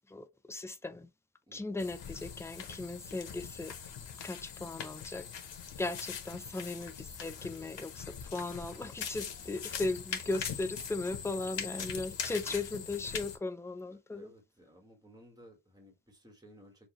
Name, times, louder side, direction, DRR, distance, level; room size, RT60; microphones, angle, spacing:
voice 1, 0.1-1.1 1.5-3.7 4.2-5.3 5.8-14.3, left 2 dB, 5° left, 0.3 m, -37 dB
voice 2, 1.5-1.8 9.7-10.1 13.9-16.9, equal, 10° right, 1.5 m, -58 dB
sound 1, 1.8-13.4, left 7 dB, 80° left, 1.0 m, -42 dB
5.9 x 2.6 x 3.0 m
wide cardioid pair, 130°, 43 cm